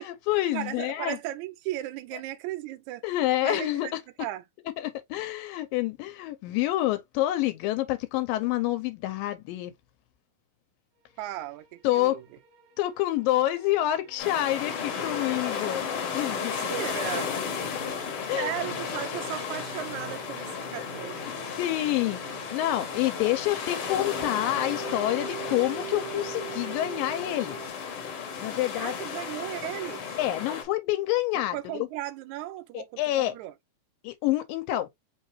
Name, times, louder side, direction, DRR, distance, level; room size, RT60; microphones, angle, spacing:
voice 1, 0.0-1.2 3.0-4.0 4.8-9.7 11.8-12.2 12.8-16.6 17.7-17.9 18.3-18.5 21.6-27.6 28.4-28.9 30.2-31.9 32.7-33.3 34.0-34.9, left 15 dB, 85° left, 2.4 m, -28 dB
voice 2, 0.5-3.0 3.4-3.9 4.2-4.4 11.2-12.2 16.3-17.3 18.2-21.3 28.8-30.2 31.3-33.5, right 14 dB, 85° right, 1.7 m, -36 dB
sound 1, 11.5-27.7, right 11 dB, 70° right, 2.3 m, -45 dB
sound 2, 14.2-30.6, left 6 dB, 65° left, 1.4 m, -34 dB
5.2 x 3.2 x 3.1 m
omnidirectional pair, 4.0 m